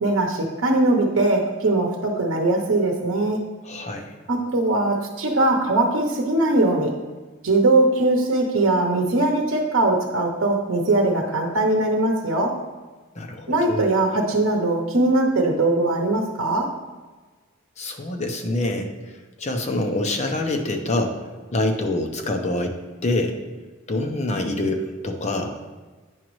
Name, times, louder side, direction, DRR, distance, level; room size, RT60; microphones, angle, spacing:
voice 1, 0.0-3.4 4.3-6.9 7.4-12.6 13.5-16.7, right 2 dB, 75° right, 1 dB, 0.8 m, -21 dB
voice 2, 3.6-4.1 13.1-13.9 17.8-23.4 23.9-25.6, left 1 dB, 35° left, 3 dB, 0.8 m, -26 dB
9.0 x 5.1 x 3.1 m, 1.3 s
head